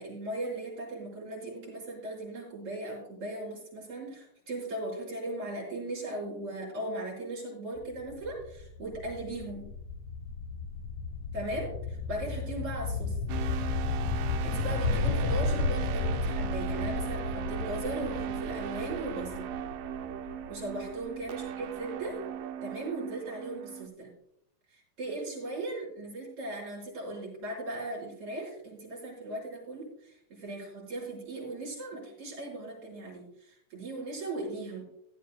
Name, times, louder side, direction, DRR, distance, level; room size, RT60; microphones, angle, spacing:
voice 1, 0.0-9.7 11.3-13.2 14.4-19.5 20.5-22.2 22.6-24.1 24.7-34.8, right 2 dB, 45° right, -4 dB, 5.7 m, -38 dB
sound 1, 7.8-21.5, left 3 dB, 75° left, 2.6 m, -33 dB
sound 2, 13.3-23.9, right 9 dB, 80° right, 2.3 m, -38 dB
16.0 x 12.5 x 2.2 m, 0.74 s
omnidirectional pair, 3.8 m